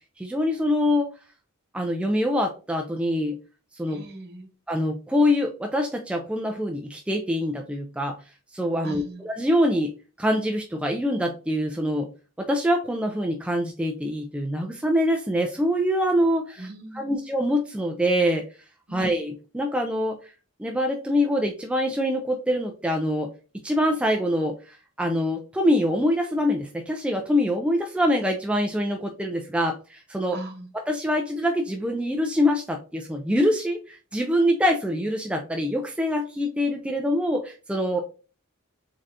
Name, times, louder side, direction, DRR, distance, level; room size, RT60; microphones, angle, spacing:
voice 1, 0.2-1.1 1.7-3.4 3.7-4.1 4.7-8.2 8.5-12.1 12.4-18.4 18.9-20.2 20.6-23.3 23.6-30.4 30.9-38.0, equal, 5° right, 2 dB, 0.4 m, -25 dB
voice 2, 3.9-4.5 8.8-9.2 16.6-17.2 18.9-19.1 30.3-30.7, right 2 dB, 50° right, 2 dB, 1.0 m, -39 dB
3.8 x 3.4 x 2.6 m, 0.34 s
head